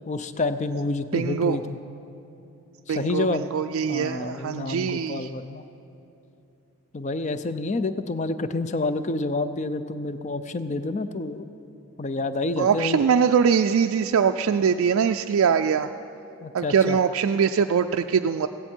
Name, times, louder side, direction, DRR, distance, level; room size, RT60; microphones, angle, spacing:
voice 1, 0.0-1.8 2.9-3.5 3.9-5.6 6.9-11.4 12.0-13.0 16.4-17.0, left 2 dB, 35° left, 11 dB, 0.5 m, -28 dB
voice 2, 1.1-1.6 2.9-5.3 12.6-15.9 16.5-18.5, right 7 dB, 80° right, 6 dB, 0.3 m, -22 dB
16.0 x 15.5 x 4.5 m, 2.9 s
head